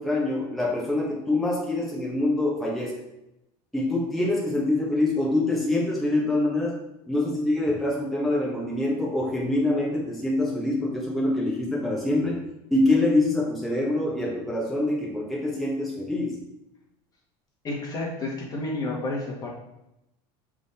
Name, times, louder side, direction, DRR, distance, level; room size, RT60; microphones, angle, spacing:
voice 1, 0.0-3.0 3.7-6.8 7.1-12.4 12.7-16.3, left 2 dB, ahead, -5 dB, 1.3 m, -25 dB
voice 2, 17.6-19.5, left 2 dB, 30° left, -2 dB, 1.6 m, -30 dB
6.1 x 3.8 x 4.3 m, 0.88 s
supercardioid pair, 125°, 12 cm